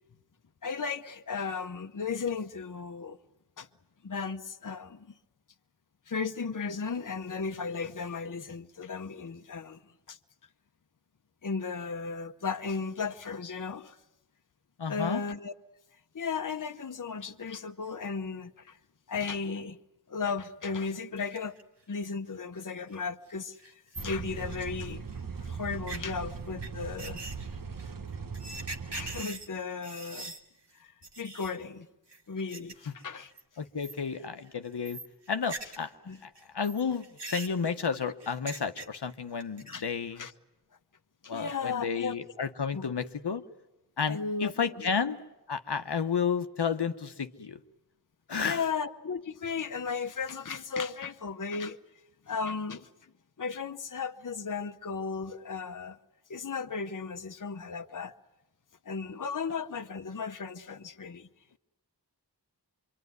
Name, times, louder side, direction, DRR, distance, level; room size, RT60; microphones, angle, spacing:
voice 1, 0.6-3.2 3.6-3.7 4.0-5.1 6.1-9.8 10.1-10.2 11.4-14.0 14.9-15.5 16.1-18.8 19.1-19.8 20.1-21.6 21.9-25.0 25.4-27.2 28.9-30.3 30.7-31.9 32.3-33.3 36.1-36.2 39.7-39.8 40.2-40.3 41.2-42.1 42.7-42.9 44.1-44.9 48.4-51.8 52.3-52.9 53.4-56.0 56.3-58.1 58.8-61.3, left 5 dB, 50° left, 0.9 m, -35 dB
voice 2, 14.8-15.2 33.6-35.0 35.3-35.9 36.2-40.2 41.3-43.4 44.0-47.6 48.3-48.6, left 6 dB, 75° left, 1.0 m, -32 dB
sound 1, 21.2-21.6 22.0-22.1 22.6-22.7 22.9-23.0 23.3-23.4 23.6-25.2 25.7-26.0 26.6-26.7 27.0-30.4 30.7-30.8 31.0-31.6 32.1-32.7 33.0-33.4 33.8-34.2 34.5-35.9 36.2-39.1 39.4-40.0, right 2 dB, 80° right, 2.3 m, -42 dB
sound 2, 24.0-29.2, right 5 dB, 55° right, 1.1 m, -39 dB
25.5 x 24.0 x 9.5 m
wide cardioid pair, 70°, 41 cm